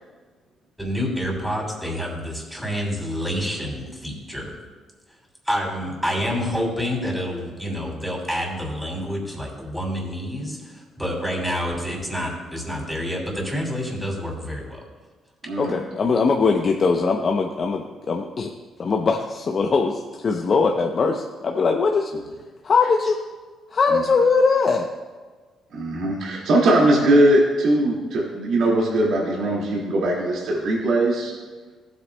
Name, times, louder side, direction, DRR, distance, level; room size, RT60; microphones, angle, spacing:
voice 1, 0.8-4.5 5.4-14.8, equal, ahead, -1 dB, 2.7 m, -28 dB
voice 2, 15.6-18.5 18.8-22.1 22.6-23.2 23.7-24.9, left 4 dB, 45° left, 3 dB, 0.6 m, -21 dB
voice 3, 25.7-31.3, right 1 dB, 75° right, -4 dB, 2.0 m, -20 dB
15.0 x 8.3 x 2.2 m, 1.4 s
cardioid pair, 90°, 0 cm